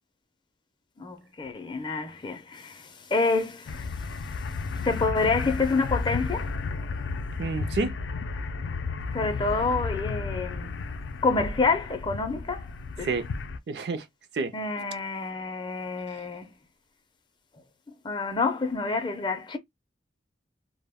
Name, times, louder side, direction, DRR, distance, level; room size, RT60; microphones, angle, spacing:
voice 1, 1.0-4.1 4.8-6.5 9.1-10.7 11.2-12.7 13.0-13.1 14.5-16.5 18.0-19.6, left 3 dB, 25° left, 0.4 m, -28 dB
sound 1, 3.7-13.6, left 4 dB, 90° left, 0.4 m, -33 dB
voice 2, 7.4-8.0 13.0-13.3 13.7-14.0 14.3-14.5, right 4 dB, 65° right, 0.4 m, -29 dB
2.1 x 2.1 x 3.4 m
head